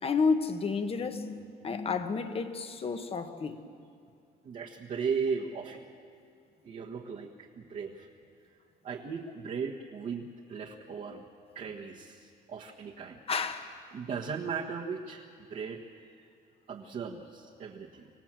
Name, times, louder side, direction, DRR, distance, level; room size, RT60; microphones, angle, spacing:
voice 1, 0.0-1.4 1.6-3.6 13.3-13.8, left 5 dB, 35° left, 1.5 m, -30 dB
voice 2, 4.4-5.9 6.6-8.1 8.8-11.2 11.5-13.2 13.9-16.3 16.7-18.1, right 5 dB, 50° right, 1.5 m, -37 dB
26.0 x 17.0 x 7.6 m
cardioid pair, 110°, 17 cm